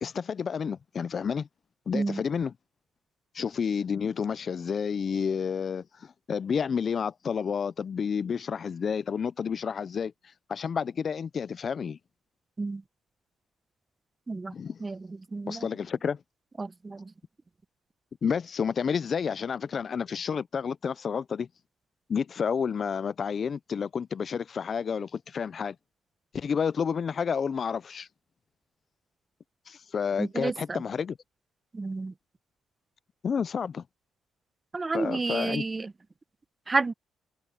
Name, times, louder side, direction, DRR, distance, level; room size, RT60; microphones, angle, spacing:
voice 1, 0.0-1.5 1.9-2.5 3.3-10.1 10.5-12.0 14.5-14.9 15.5-16.2 18.2-21.5 22.1-25.8 26.3-28.1 29.7-31.2 33.2-33.8 34.9-35.6, left 6 dB, 45° left, 0.5 m, -30 dB
voice 2, 15.3-15.7 16.6-17.1 30.2-30.8 31.7-32.1 34.7-35.9 36.7-36.9, right 3 dB, 25° right, 0.8 m, -30 dB
cardioid pair, 90°, 0 cm